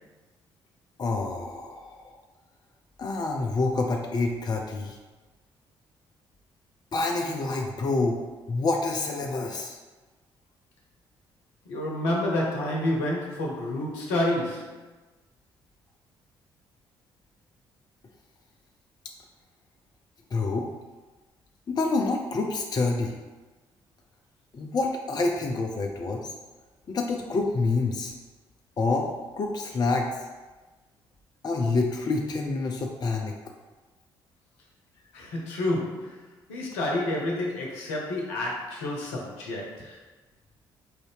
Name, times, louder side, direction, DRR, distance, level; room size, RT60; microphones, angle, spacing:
voice 1, 1.0-2.2 3.0-5.0 6.9-8.2 8.5-9.8 20.3-20.7 21.7-23.2 24.5-26.3 26.9-28.1 28.8-30.2 31.4-33.3, left 3 dB, 35° left, 1 dB, 0.5 m, -27 dB
voice 2, 11.7-14.8 35.1-36.2 36.5-40.0, left 1 dB, 70° left, -2 dB, 0.8 m, -29 dB
4.7 x 2.6 x 3.3 m, 1.2 s
figure-of-eight pair, 45°, 12 cm